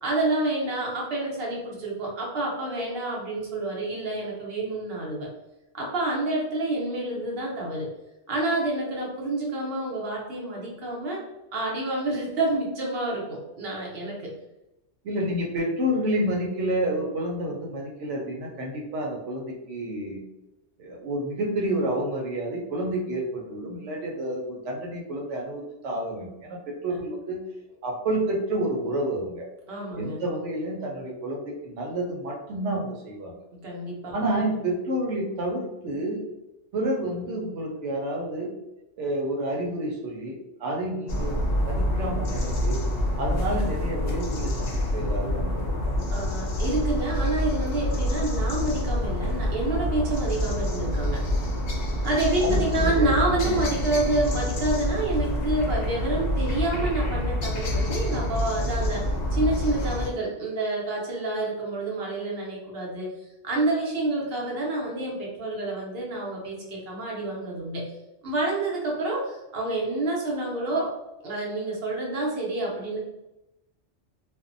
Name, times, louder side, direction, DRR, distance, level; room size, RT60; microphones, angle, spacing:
voice 1, 0.0-5.3 5.7-7.9 8.3-11.2 11.5-14.3 26.9-27.0 29.7-30.2 33.5-34.2 46.1-51.3 52.0-63.1 63.4-67.8 68.2-70.9 71.2-73.0, right 2 dB, 60° right, -3 dB, 1.0 m, -28 dB
voice 2, 15.0-20.2 20.8-27.4 27.8-29.5 30.0-33.3 34.1-36.2 36.7-38.5 39.0-42.8 43.2-45.7 52.4-53.9, right 1 dB, 90° right, 0 dB, 1.0 m, -29 dB
sound 1, 41.1-60.1, left 1 dB, 60° left, 0.7 m, -27 dB
2.6 x 2.1 x 2.5 m, 0.93 s
omnidirectional pair, 1.2 m